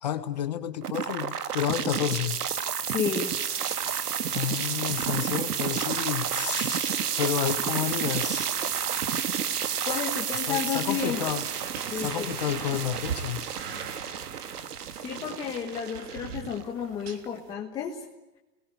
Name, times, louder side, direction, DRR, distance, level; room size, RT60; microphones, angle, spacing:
voice 1, 0.0-2.4 4.3-8.6 10.5-11.4 12.0-13.4, left 10 dB, 25° left, 10 dB, 1.1 m, -30 dB
sound 1, 0.8-16.8, right 8 dB, 70° right, 2.1 m, -30 dB
voice 2, 2.8-3.3 9.8-11.2 11.9-12.3 15.0-18.0, left 7 dB, 10° left, -2 dB, 1.5 m, -32 dB
sound 2, 10.7-17.5, right 6 dB, 40° right, 3.4 m, -42 dB
29.5 x 21.0 x 9.2 m, 1.1 s
hypercardioid pair, 175°, 48 cm